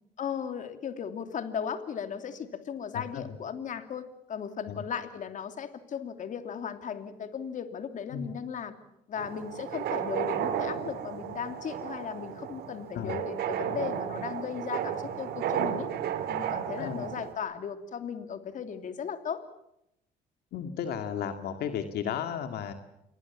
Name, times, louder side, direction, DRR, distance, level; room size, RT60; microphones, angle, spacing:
voice 1, 0.2-8.7 9.1-15.9 16.3-19.4, left 7 dB, 50° left, 8 dB, 2.9 m, -36 dB
voice 2, 2.9-3.2 4.7-4.8 8.1-8.3 12.9-13.2 16.8-17.1 20.5-22.7, left 8 dB, 70° left, 7 dB, 2.3 m, -34 dB
sound 1, 9.2-17.3, right 9 dB, 70° right, 3.4 m, -33 dB
28.0 x 22.5 x 7.2 m, 0.81 s
cardioid pair, 110°, 17 cm